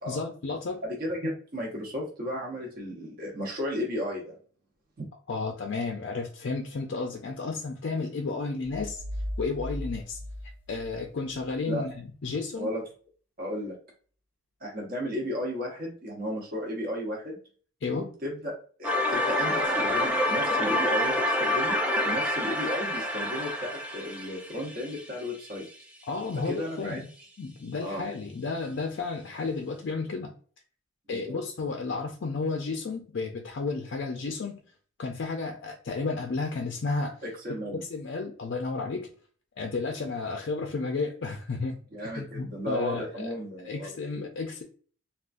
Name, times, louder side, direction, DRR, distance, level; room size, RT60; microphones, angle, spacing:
voice 1, 0.1-0.8 5.3-9.0 9.4-10.2 10.7-12.7 17.8-18.1 26.1-27.1 27.4-30.3 31.1-34.6 35.0-37.2 37.9-39.1 39.6-41.8 42.2-43.3 43.6-44.6, left 4 dB, 55° left, 2 dB, 0.4 m, -32 dB
voice 2, 0.8-4.3 11.6-11.8 12.6-12.8 13.4-13.8 14.6-17.4 17.9-18.5 18.8-21.8 22.0-25.7 26.4-27.0 27.8-28.0 31.1-31.4 37.2-37.8 41.9-43.9 44.2-44.3, left 1 dB, 45° right, -2 dB, 0.9 m, -34 dB
sound 1, 8.6-11.5, equal, 10° left, 1.0 m, -37 dB
sound 2, 18.8-25.7, left 1 dB, 5° right, 0.3 m, -27 dB
3.6 x 2.4 x 2.5 m, 0.43 s
head